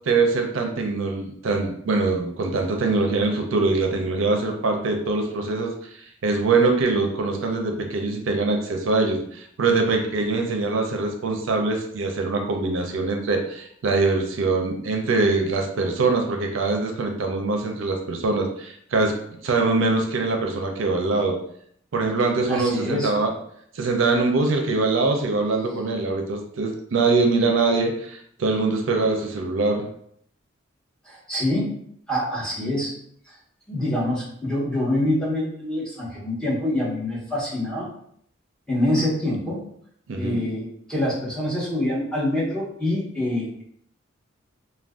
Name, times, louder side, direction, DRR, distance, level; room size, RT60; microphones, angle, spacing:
voice 1, 0.1-19.1 19.4-21.4 21.9-23.3 23.7-29.9 40.1-40.4, right 3 dB, 75° right, 3 dB, 0.5 m, -23 dB
voice 2, 22.5-23.1 31.0-31.7 32.1-32.9 33.7-37.9 38.7-39.6 40.2-43.6, left 1 dB, 5° left, -7 dB, 0.9 m, -25 dB
2.4 x 2.2 x 3.5 m, 0.67 s
head